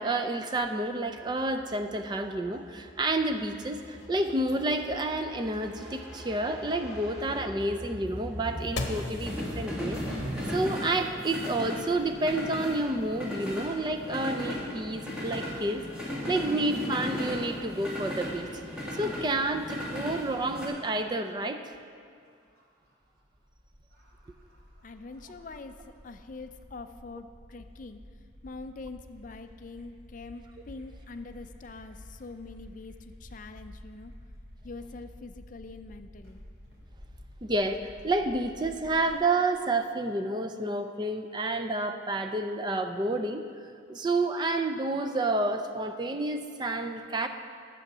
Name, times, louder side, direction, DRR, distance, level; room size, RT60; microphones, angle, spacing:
voice 1, 0.0-10.3 10.5-15.8 16.3-18.6 19.0-21.6 37.4-43.4 43.9-47.3, right 2 dB, 20° right, 6 dB, 0.4 m, -30 dB
sound 1, 1.2-20.7, left 1 dB, 5° right, 2.1 m, -37 dB
sound 2, 3.7-10.8, left 2 dB, 60° left, 1.1 m, -43 dB
sound 3, 22.2-39.1, left 1 dB, 80° right, 2.9 m, -51 dB
voice 2, 24.8-28.0 28.4-34.1 34.6-36.4, left 3 dB, 40° left, 9 dB, 0.4 m, -44 dB
11.5 x 7.7 x 6.0 m, 2.3 s
head